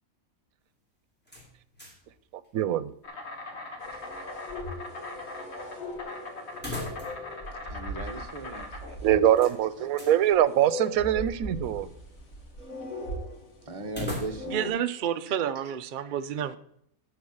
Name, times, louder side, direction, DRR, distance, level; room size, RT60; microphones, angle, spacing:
sound 1, 1.2-2.1 2.4-2.5 6.5-7.4 7.7-7.8 9.4-10.2 13.9-14.7, left 2 dB, 5° left, 2.8 m, -39 dB
voice 1, 2.5-2.9 9.0-11.9, right 11 dB, 90° right, 16 dB, 1.1 m, -23 dB
Insect, 3.0-13.0, left 2 dB, 50° left, 1.8 m, -42 dB
sound 2, 3.8-9.2 9.4-9.5 10.3-13.9 14.3-14.7, left 1 dB, 75° left, 2.2 m, -39 dB
voice 2, 7.7-8.7 9.0-9.2 13.7-14.8 15.3-15.7, right 3 dB, 25° right, 4 dB, 1.1 m, -38 dB
voice 3, 14.5-16.6, right 9 dB, 60° right, 10 dB, 0.5 m, -30 dB
11.5 x 4.3 x 7.1 m, 0.71 s
omnidirectional pair, 1.4 m